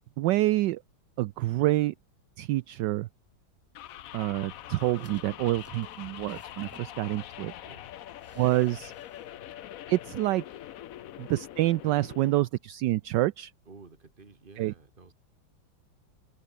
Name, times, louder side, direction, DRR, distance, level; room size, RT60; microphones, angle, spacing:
voice 1, 0.2-0.8 1.2-1.9 2.4-3.1 4.1-7.5 8.4-8.9 9.9-10.4 11.2-13.5 14.6-14.7, right 16 dB, 75° right, 1.1 m, -27 dB
sound 1, 3.7-12.3, left 12 dB, 70° left, 0.8 m, -44 dB
sound 2, 4.5-7.5 8.2-9.2 9.5-9.6, equal, 5° right, 5.7 m, -56 dB
voice 2, 13.7-15.1, right 4 dB, 25° right, 2.1 m, -52 dB
open air
omnidirectional pair, 2.2 m